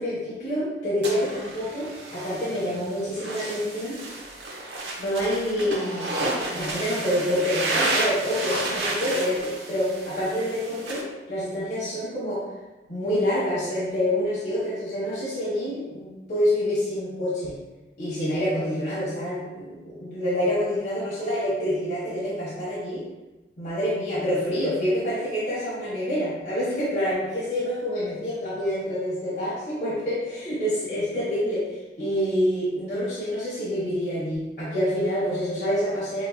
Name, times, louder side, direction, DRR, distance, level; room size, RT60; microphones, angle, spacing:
voice 1, 0.0-3.9 5.0-6.1 6.4-12.4 12.9-17.6 18.0-23.0 23.6-36.2, equal, 60° left, -10 dB, 1.4 m, -27 dB
sound 1, 1.0-11.0, right 2 dB, 85° right, 0.9 m, -31 dB
7.6 x 2.8 x 2.2 m, 1.1 s
head